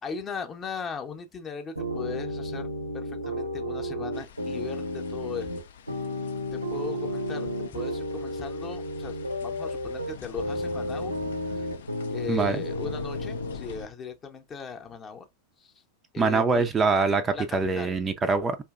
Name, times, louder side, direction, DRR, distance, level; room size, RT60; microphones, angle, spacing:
voice 1, 0.0-5.5 6.5-11.2 11.5-11.7 12.1-15.3 15.6-15.7 16.1-16.7 17.3-17.4 17.8-17.9, left 6 dB, 25° left, 0.7 m, -38 dB
sound 1, 1.8-13.6, left 1 dB, 85° right, 0.7 m, -32 dB
sound 2, 4.1-13.9, left 7 dB, 60° left, 0.4 m, -45 dB
voice 2, 12.3-12.6 16.2-18.6, right 4 dB, 20° right, 0.4 m, -24 dB
4.5 x 2.7 x 2.3 m
figure-of-eight pair, 90°, 0 cm